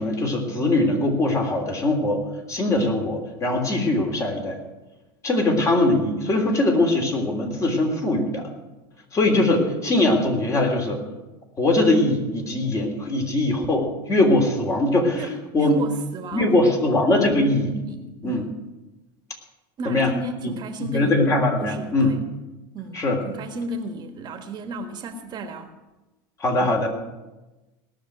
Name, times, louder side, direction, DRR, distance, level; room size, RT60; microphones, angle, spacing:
voice 1, 0.0-2.2 2.5-4.5 5.2-8.5 9.1-11.0 11.6-15.2 15.5-15.8 16.3-17.8 18.2-18.4 19.8-20.1 20.4-20.5 20.9-22.1 22.9-23.2 26.4-26.9, left 2 dB, 25° left, 2 dB, 3.3 m, -21 dB
voice 2, 15.6-16.7 17.9-18.5 19.8-21.2 21.6-22.2 22.7-23.0 23.3-25.7, right 2 dB, 40° right, 7 dB, 1.4 m, -34 dB
18.0 x 6.6 x 9.0 m, 1.1 s
supercardioid pair, 115°, 12 cm